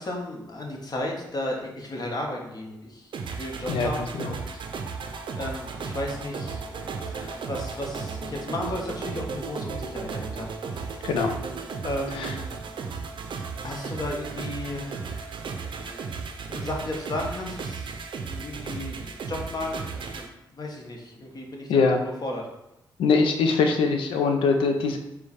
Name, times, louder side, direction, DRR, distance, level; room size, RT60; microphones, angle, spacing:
voice 1, 0.0-4.5 5.4-11.1 11.8-12.6 13.6-15.1 16.5-17.9 18.2-20.2 20.5-22.4, left 1 dB, 45° left, 0 dB, 1.1 m, -34 dB
sound 1, 3.1-20.3, right 5 dB, 65° right, 0.5 m, -35 dB
voice 2, 3.7-4.3 11.0-11.4 12.1-12.4 21.7-22.0 23.0-25.0, left 4 dB, 80° left, 5 dB, 0.5 m, -23 dB
4.6 x 2.2 x 4.1 m, 0.87 s
supercardioid pair, 45°, 9 cm